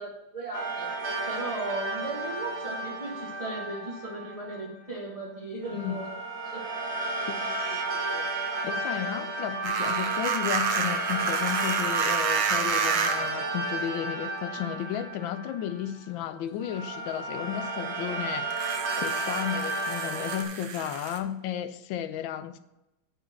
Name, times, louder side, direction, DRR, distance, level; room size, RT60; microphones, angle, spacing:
voice 1, 0.0-6.1 6.5-6.7, right 2 dB, 20° right, 1.4 m, -37 dB
sound 1, 0.5-4.7 5.6-16.1 16.6-20.4, right 3 dB, 40° right, 1.1 m, -32 dB
voice 2, 5.7-6.0 7.3-8.3 8.6-22.6, left 10 dB, 75° left, 1.3 m, -34 dB
sound 2, 9.6-13.4 14.4-14.5 18.5-21.2, right 6 dB, 65° right, 1.5 m, -30 dB
9.2 x 4.4 x 6.3 m
omnidirectional pair, 2.3 m